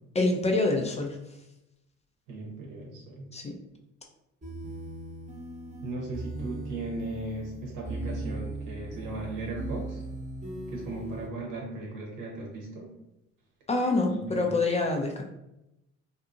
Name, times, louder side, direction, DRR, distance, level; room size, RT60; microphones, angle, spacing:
voice 1, 0.1-1.2 3.3-3.6 13.7-15.2, left 2 dB, 20° left, 2 dB, 0.5 m, -26 dB
voice 2, 2.3-3.3 5.8-10.0 10.7-12.9 14.1-14.5, right 2 dB, 60° right, -1 dB, 1.0 m, -37 dB
sound 1, 4.4-11.3, right 2 dB, 20° right, 1.0 m, -38 dB
2.7 x 2.5 x 2.5 m, 0.89 s
hypercardioid pair, 60°, 36 cm